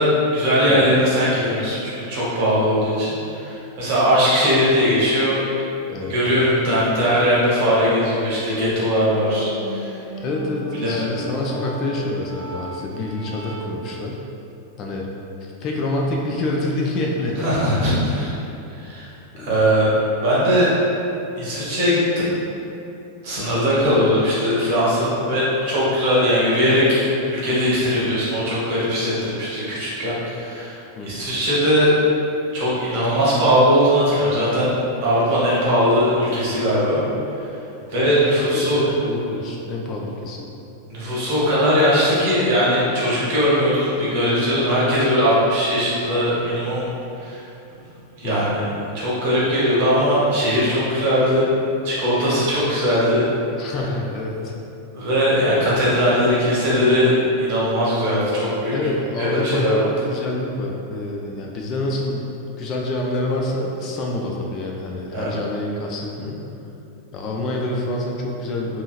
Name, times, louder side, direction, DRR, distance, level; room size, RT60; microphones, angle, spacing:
voice 1, 0.0-5.4 6.1-9.9 10.8-11.2 17.4-18.3 18.7-19.1 19.4-19.9 20.2-20.7 21.4-22.3 23.2-31.9 32.5-34.7 35.0-37.0 37.9-38.8 40.9-46.9 47.2-47.4 48.2-48.6 48.9-51.4 51.8-53.2 54.9-57.1 57.4-58.7 59.2-59.9 65.1-65.3, equal, 50° right, -8 dB, 1.0 m, -19 dB
sound 1, 8.9-13.9, equal, 85° left, 0.9 m, -36 dB
voice 2, 10.2-14.2 14.8-15.1 15.6-17.6 19.3-19.5 30.9-31.3 38.4-40.5 48.2-48.6 53.6-54.5 58.7-62.3 62.6-66.4 67.1-68.8, left 2 dB, 35° left, -1 dB, 0.3 m, -27 dB
2.7 x 2.7 x 2.4 m, 2.8 s
figure-of-eight pair, 90°, 0 cm